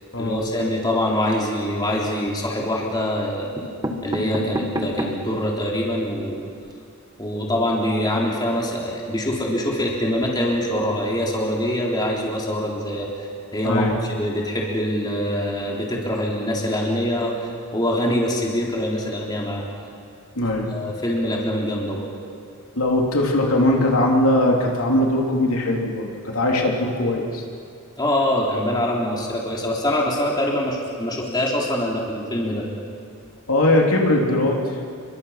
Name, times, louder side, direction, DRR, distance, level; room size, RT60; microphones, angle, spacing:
voice 1, 0.2-3.5 4.0-6.4 7.2-13.3 13.5-19.6 20.7-22.1 28.0-32.7, left 1 dB, 20° left, -3 dB, 3.6 m, -24 dB
sound 1, 1.9-2.4 3.2-3.3 3.6-5.4 5.9-6.0 6.1-6.2 6.5-6.7, equal, 15° right, 1.7 m, -30 dB
voice 2, 13.6-13.9 20.3-20.7 22.7-27.4 33.5-34.8, left 1 dB, 70° left, -1 dB, 3.3 m, -20 dB
29.0 x 23.5 x 5.8 m, 2.3 s
head